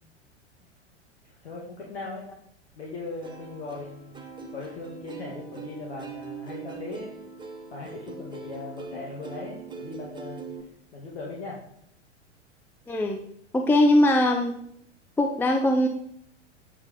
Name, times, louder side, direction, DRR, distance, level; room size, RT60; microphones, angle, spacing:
voice 1, 1.2-2.3 2.7-4.2 4.5-7.1 7.7-10.5 10.9-11.6, left 3 dB, 65° left, -4 dB, 2.3 m, -38 dB
Plucked string instrument, 3.2-10.6, right 5 dB, 15° right, 1.0 m, -41 dB
voice 2, 12.9-13.2 13.5-14.6 15.2-15.9, left 1 dB, 5° left, 3 dB, 0.6 m, -21 dB
8.2 x 7.1 x 3.8 m, 0.69 s
figure-of-eight pair, 95°, 35 cm